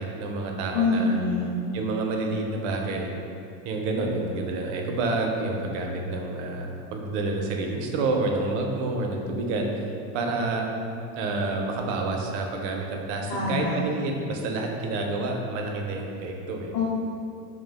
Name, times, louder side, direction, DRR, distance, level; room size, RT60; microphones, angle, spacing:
voice 1, 0.0-1.2 1.7-3.1 3.6-10.6 11.2-16.7, right 2 dB, 75° right, 1 dB, 0.5 m, -28 dB
voice 2, 0.7-1.5 13.3-13.8 16.7-16.8, left 4 dB, 40° left, -6 dB, 0.4 m, -25 dB
2.3 x 2.2 x 3.2 m, 2.6 s
supercardioid pair, 135°, 36 cm